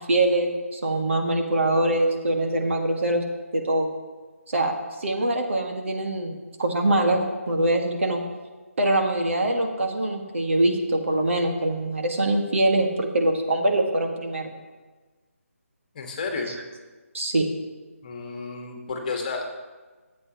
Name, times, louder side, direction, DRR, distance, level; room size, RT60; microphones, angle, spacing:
voice 1, 0.0-3.2 3.5-3.9 4.5-4.7 5.0-8.2 8.8-14.5 17.1-17.5, right 1 dB, 60° right, 2 dB, 1.8 m, -23 dB
voice 2, 15.9-16.5 18.0-19.5, left 4 dB, 35° left, 3 dB, 1.6 m, -31 dB
22.5 x 8.4 x 3.0 m, 1.3 s
figure-of-eight pair, 150°, 8 cm